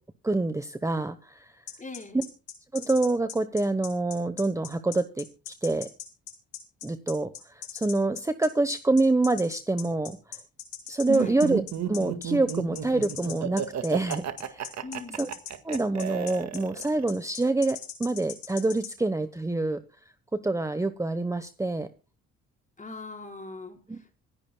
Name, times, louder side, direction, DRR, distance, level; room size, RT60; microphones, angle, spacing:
voice 1, 0.2-1.5 2.7-5.2 5.6-5.9 6.8-10.2 10.9-11.6 11.9-14.7 15.1-15.3 15.6-19.8 20.4-21.9 23.9-24.1, right 2 dB, 10° right, 10 dB, 1.0 m, -26 dB
sound 1, 1.7-18.9, left 10 dB, 80° left, 5.9 m, -40 dB
voice 2, 1.8-2.2 11.1-11.4 14.8-15.3 22.8-23.8, left 3 dB, 25° left, 2 dB, 4.7 m, -41 dB
Laughter, 11.1-17.0, right 9 dB, 65° right, 1.8 m, -32 dB
26.0 x 10.5 x 2.2 m, 0.34 s
cardioid pair, 90°, 30 cm